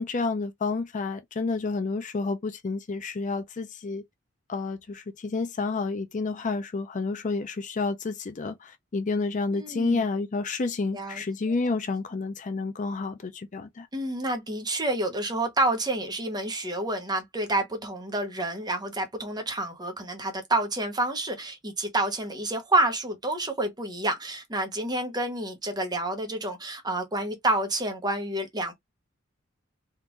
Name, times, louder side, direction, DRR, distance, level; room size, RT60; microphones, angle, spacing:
voice 1, 0.0-4.0 4.5-13.9, left 3 dB, 40° left, 0.5 m, -30 dB
voice 2, 9.5-10.0 10.9-11.2 13.9-28.7, right 2 dB, 20° right, 1.0 m, -29 dB
3.6 x 2.5 x 3.0 m
head